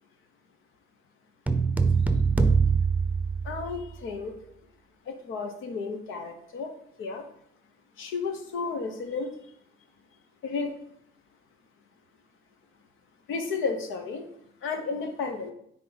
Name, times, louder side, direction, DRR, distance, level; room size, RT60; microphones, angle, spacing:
sound 1, 1.5-4.0, right 5 dB, 5° right, 0.6 m, -23 dB
voice 1, 3.4-4.3 5.1-6.7 7.0-7.2 8.0-9.3 10.4-10.7 13.3-14.3 14.6-15.5, left 4 dB, 85° left, 5 dB, 1.1 m, -32 dB
9.5 x 3.7 x 4.1 m, 0.72 s
cardioid pair, 90°, 20 cm